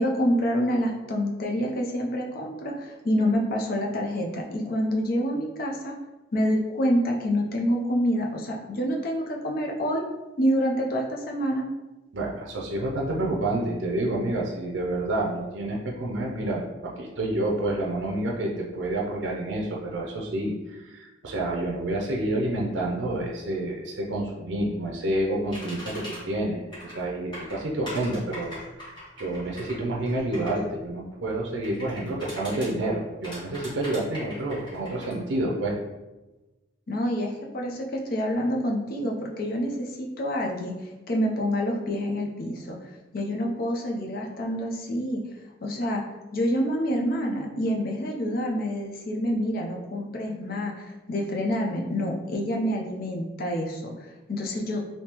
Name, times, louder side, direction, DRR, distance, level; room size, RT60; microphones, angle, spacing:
voice 1, 0.0-6.0 6.3-10.0 10.4-11.7 36.9-45.2 45.6-46.0 46.3-54.9, equal, 50° left, 0 dB, 0.4 m, -27 dB
voice 2, 12.1-35.7, right 1 dB, 75° right, -1 dB, 0.5 m, -29 dB
sound 1, 25.5-26.2 26.7-27.0 27.3-30.6 31.6-32.7 33.2-35.1, equal, 25° left, 1.4 m, -40 dB
3.5 x 2.7 x 2.9 m, 1.1 s
head